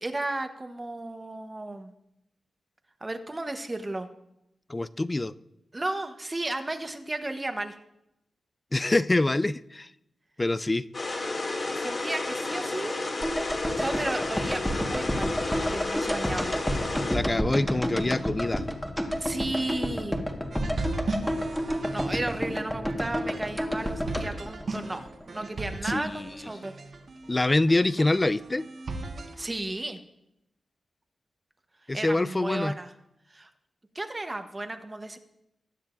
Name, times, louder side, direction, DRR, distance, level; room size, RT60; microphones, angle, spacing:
voice 1, 0.0-1.9 3.0-4.1 5.7-7.8 11.8-13.0 13.8-16.5 19.2-20.2 21.9-26.7 29.3-30.0 31.9-32.9 33.3-33.5 33.9-35.2, right 2 dB, 25° right, 7 dB, 1.0 m, -34 dB
voice 2, 4.7-5.3 8.7-9.9 10.4-10.9 17.1-18.6 25.8-26.3 27.3-28.7 31.9-32.8, left 2 dB, 25° left, 16 dB, 0.4 m, -25 dB
sound 1, 10.9-17.2, left 2 dB, 45° left, 2.5 m, -31 dB
sound 2, 13.2-25.4 25.7-25.8, equal, 5° left, 1.5 m, -30 dB
sound 3, 20.5-29.3, right 2 dB, 60° right, 1.5 m, -37 dB
20.5 x 9.6 x 2.6 m, 0.84 s
cardioid pair, 85°, 0 cm